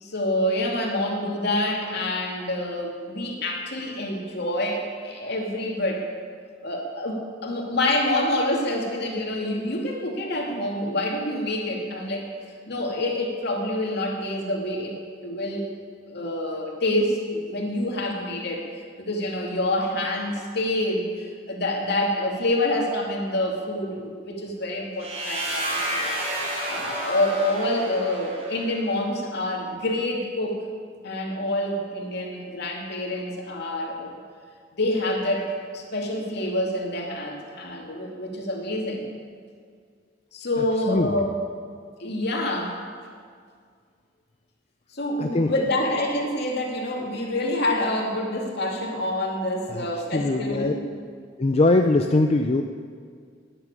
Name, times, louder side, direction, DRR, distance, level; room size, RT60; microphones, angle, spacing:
voice 1, 0.0-6.1 6.6-12.2 12.7-15.0 15.2-15.7 16.1-18.6 19.0-26.2 26.7-30.6 31.0-34.2 34.8-39.0 40.3-41.3 42.0-42.8 44.9-50.9, left 1 dB, 60° left, 0 dB, 2.5 m, -27 dB
sound 1, 25.0-28.8, right 1 dB, 35° right, 4.2 m, -30 dB
voice 2, 45.2-45.5 49.7-49.9 50.1-50.7 51.4-52.6, left 2 dB, 35° left, 5 dB, 0.5 m, -21 dB
12.0 x 10.0 x 9.0 m, 2.1 s
head